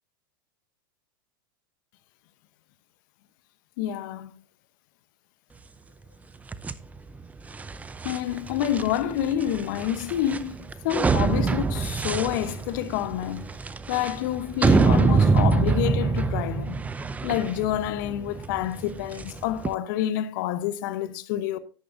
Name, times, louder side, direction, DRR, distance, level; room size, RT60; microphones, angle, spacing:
voice 1, 3.8-4.3 8.0-13.5 13.9-16.8 17.2-21.6, left 11 dB, 60° left, 0.9 m, -28 dB
sound 1, 6.5-19.7, right 4 dB, 15° right, 0.5 m, -25 dB
10.0 x 10.0 x 2.6 m
hypercardioid pair, 105°, 12 cm